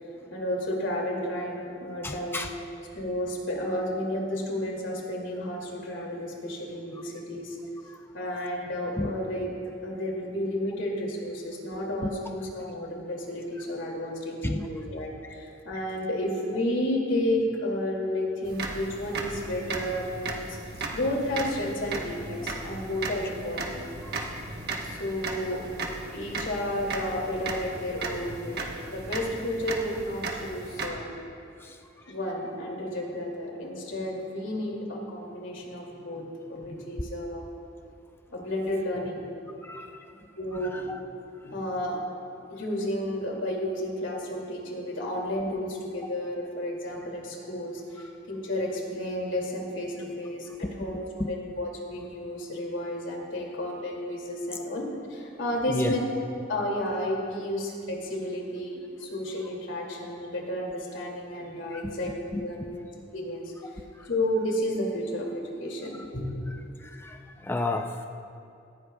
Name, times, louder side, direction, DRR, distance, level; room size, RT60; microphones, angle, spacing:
voice 1, 0.3-2.5 2.9-7.6 8.1-9.5 9.8-20.6 20.9-23.8 24.8-25.6 26.1-31.1 32.1-37.5 38.3-39.5 40.4-40.9 41.4-42.0 42.5-56.0 56.5-62.7 63.1-66.5, left 1 dB, 80° left, -1 dB, 2.4 m, -32 dB
voice 2, 2.0-2.5 7.9-8.0 9.0-9.1 12.0-12.1 14.4-14.7 24.2-24.5 24.9-25.1 31.6-31.8 39.6-40.0 40.7-41.0 50.6-51.3 54.5-54.6 55.7-56.0 61.7-61.9 62.3-62.4 63.6-64.1 66.8-68.1, left 2 dB, 10° left, 4 dB, 0.4 m, -33 dB
sound 1, 18.4-30.9, right 3 dB, 55° right, 1.2 m, -36 dB
18.0 x 15.0 x 2.3 m, 2.5 s
head